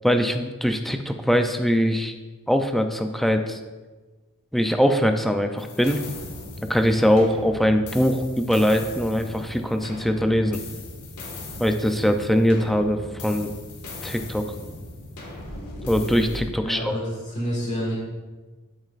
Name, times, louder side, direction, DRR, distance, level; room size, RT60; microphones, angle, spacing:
voice 1, 0.0-2.1 2.5-3.6 4.5-6.0 6.7-10.6 11.6-13.5 14.0-14.4 15.9-16.9, equal, ahead, 5 dB, 0.4 m, -22 dB
sound 1, 5.6-16.4, left 1 dB, 85° left, 1.8 m, -38 dB
voice 2, 16.6-17.9, equal, 30° left, -7 dB, 2.0 m, -28 dB
12.5 x 6.4 x 2.5 m, 1.3 s
head